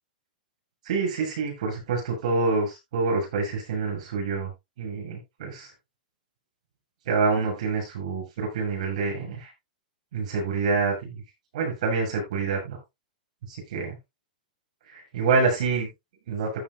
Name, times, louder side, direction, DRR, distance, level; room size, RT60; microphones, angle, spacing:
voice 1, 0.9-4.5 4.8-5.7 7.1-9.5 10.1-11.2 11.5-12.8 13.5-14.0 14.9-15.9 16.3-16.5, right 4 dB, 50° right, 7.8 m, -27 dB
15.0 x 8.3 x 2.2 m
supercardioid pair, 180°, 5 cm